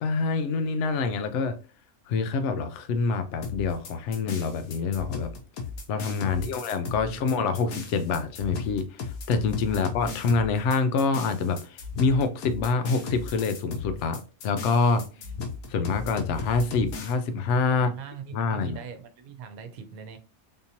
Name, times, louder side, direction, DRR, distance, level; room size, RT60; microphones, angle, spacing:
voice 1, 0.0-1.6 2.1-5.3 5.9-15.0 15.7-17.9 18.3-18.8, left 4 dB, 65° left, 0.8 m, -26 dB
sound 1, 3.4-17.1, left 4 dB, 80° left, 1.2 m, -36 dB
voice 2, 17.7-20.2, right 7 dB, 80° right, 1.1 m, -42 dB
3.6 x 2.7 x 2.7 m
omnidirectional pair, 1.5 m